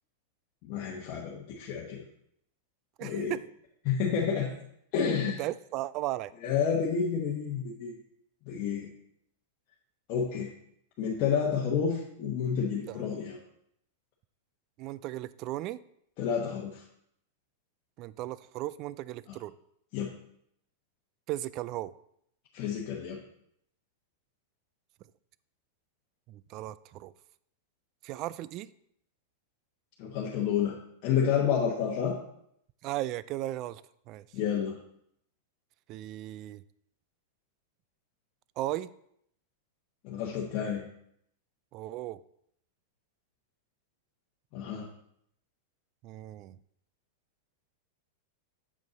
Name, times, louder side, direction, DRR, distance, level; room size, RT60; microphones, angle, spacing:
voice 1, 0.6-2.0 3.0-3.3 3.8-4.5 4.9-5.4 6.4-7.9 8.5-8.9 10.1-10.5 11.0-13.4 16.2-16.8 19.9-20.1 22.5-23.2 30.0-30.8 31.0-32.2 34.3-34.8 40.0-40.8 44.5-44.9, left 7 dB, 45° left, -3 dB, 1.1 m, -29 dB
voice 2, 3.0-3.4 5.3-6.3 12.9-13.2 14.8-15.8 18.0-19.5 21.3-21.9 26.3-27.1 28.0-28.7 32.8-33.8 34.1-34.2 35.9-36.6 38.6-38.9 41.7-42.2 46.0-46.6, right 15 dB, 45° right, 18 dB, 0.3 m, -36 dB
7.3 x 5.2 x 4.0 m, 0.72 s
hypercardioid pair, 115°, 0 cm